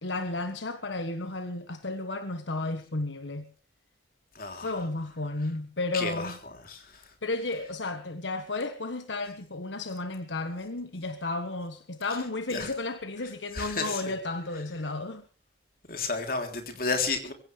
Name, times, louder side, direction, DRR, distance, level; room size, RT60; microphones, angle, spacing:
voice 1, 0.0-3.5 4.5-6.4 7.2-15.2, left 2 dB, 80° left, 1.4 m, -33 dB
voice 2, 4.3-4.7 5.9-6.3 6.6-6.9 12.5-12.7 13.5-14.1 15.9-17.3, left 4 dB, 50° left, 3.4 m, -31 dB
23.0 x 16.5 x 3.4 m
head